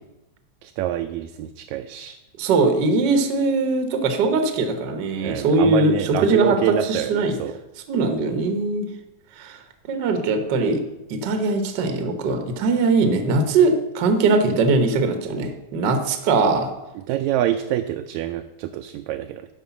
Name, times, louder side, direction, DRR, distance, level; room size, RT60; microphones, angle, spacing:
voice 1, 0.6-2.2 5.2-7.6 17.1-19.5, right 12 dB, 80° right, 7 dB, 1.8 m, -26 dB
voice 2, 2.4-7.4 7.9-8.9 9.4-9.6 9.9-10.8 11.1-16.7, right 3 dB, 60° right, 7 dB, 1.2 m, -21 dB
11.5 x 5.2 x 6.9 m, 0.95 s
omnidirectional pair, 3.4 m